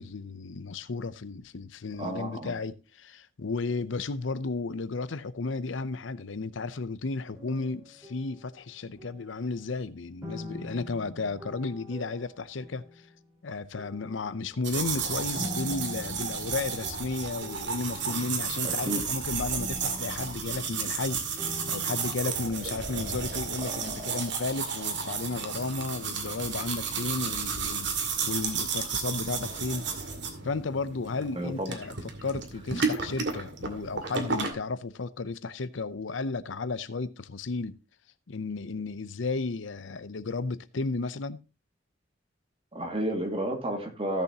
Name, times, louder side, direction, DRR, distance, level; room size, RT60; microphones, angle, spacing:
voice 1, 0.0-13.1 13.4-29.9 30.4-31.9 32.2-37.8 38.3-41.4, left 3 dB, 80° left, 0.7 m, -33 dB
voice 2, 2.0-2.5 18.6-19.0 23.6-24.2 31.3-31.8 42.7-44.2, right 1 dB, 30° right, 2.2 m, -32 dB
sound 1, 7.3-9.7 10.2-13.3 13.7-21.1 21.4-22.2, left 1 dB, 15° right, 4.4 m, -45 dB
sound 2, 14.6-34.5, right 5 dB, 70° right, 2.2 m, -33 dB
16.0 x 7.0 x 2.9 m
head